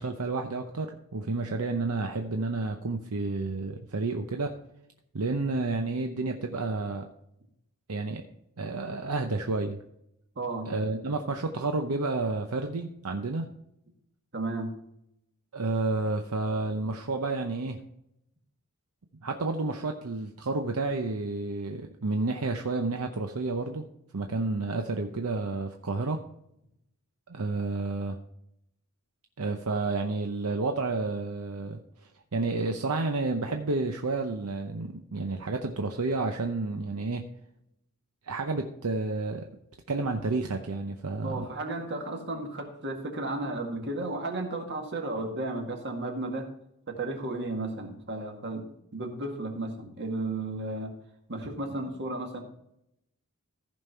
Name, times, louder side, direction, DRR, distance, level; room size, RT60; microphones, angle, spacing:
voice 1, 0.0-4.5 5.1-7.0 7.9-8.2 8.6-9.8 10.7-13.5 15.5-17.8 19.2-23.9 24.1-26.2 27.3-28.2 29.4-37.3 38.2-39.5 39.9-41.5, right 3 dB, 75° right, 4 dB, 0.8 m, -30 dB
voice 2, 10.4-10.7 14.3-14.7 41.2-46.5 46.9-50.9 51.3-52.4, right 2 dB, 50° right, 3 dB, 2.0 m, -34 dB
15.0 x 5.4 x 4.3 m, 0.79 s
head